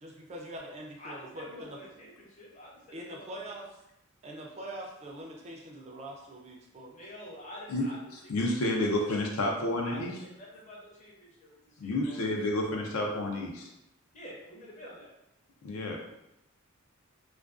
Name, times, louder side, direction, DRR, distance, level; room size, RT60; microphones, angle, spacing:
voice 1, 0.0-1.8 2.9-3.7 4.2-7.0, right 1 dB, 30° right, -1 dB, 0.3 m, -43 dB
voice 2, 1.0-3.5 6.9-8.0 8.2-9.1 9.8-12.2 14.1-15.1, left 1 dB, 35° left, -4 dB, 0.7 m, -48 dB
voice 3, 8.3-10.1 11.8-13.7 15.6-16.0, left 1 dB, 80° left, 0 dB, 0.5 m, -30 dB
2.4 x 2.2 x 2.4 m, 0.85 s
head